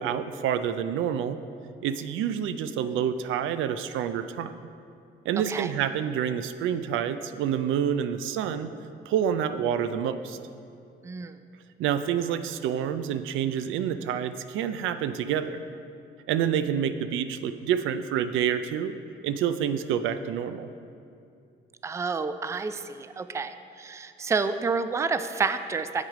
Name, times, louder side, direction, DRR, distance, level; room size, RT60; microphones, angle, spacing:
voice 1, 0.0-1.4 1.8-4.5 5.3-8.7 9.1-10.4 11.8-15.6 16.3-18.9 19.2-20.7, right 9 dB, 85° right, 11 dB, 0.4 m, -28 dB
voice 2, 11.0-11.4 21.8-26.1, right 4 dB, 15° right, 11 dB, 0.3 m, -29 dB
7.5 x 6.1 x 4.9 m, 2.5 s
cardioid pair, 90°, 20 cm